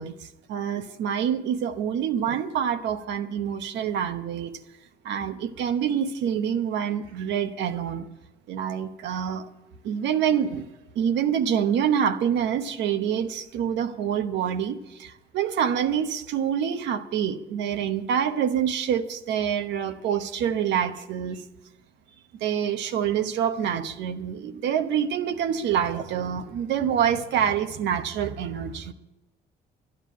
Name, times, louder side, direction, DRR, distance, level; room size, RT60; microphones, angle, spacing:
voice 1, 0.0-4.6 5.0-8.1 8.5-9.5 9.8-10.7 10.9-21.5 22.3-28.9, right 8 dB, 80° right, 1.0 m, -26 dB
12.5 x 9.9 x 9.3 m
supercardioid pair, 70°, 18 cm